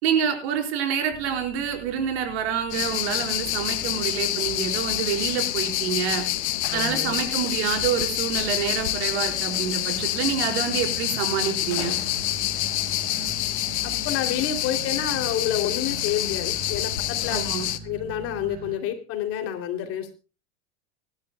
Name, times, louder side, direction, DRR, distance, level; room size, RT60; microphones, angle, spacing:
voice 1, 0.0-6.2 6.7-11.9 17.3-17.7, right 8 dB, 70° right, 4 dB, 4.6 m, -27 dB
sound 1, 1.1-18.8, right 6 dB, 25° right, 1.6 m, -43 dB
sound 2, 2.7-17.8, left 15 dB, 80° left, 1.2 m, -27 dB
voice 2, 6.7-7.2 13.8-17.4 17.8-20.1, left 10 dB, 45° left, 6 dB, 3.0 m, -29 dB
26.5 x 12.0 x 2.3 m, 0.32 s
supercardioid pair, 140°, 33 cm